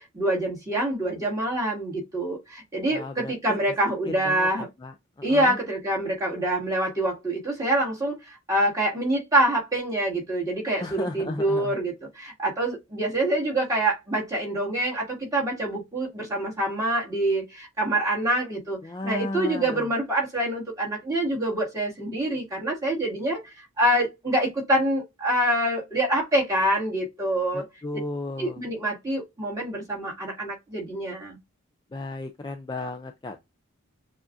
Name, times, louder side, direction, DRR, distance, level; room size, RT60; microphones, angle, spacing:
voice 1, 0.0-4.7 5.2-23.4 23.8-27.7 28.4-31.4, right 1 dB, 15° right, 2.0 m, -26 dB
voice 2, 2.9-3.6 4.0-4.9 5.3-5.5 10.8-11.8 18.8-19.8 27.5-28.6 31.9-33.4, left 2 dB, 20° left, 0.3 m, -34 dB
7.0 x 2.5 x 2.5 m
head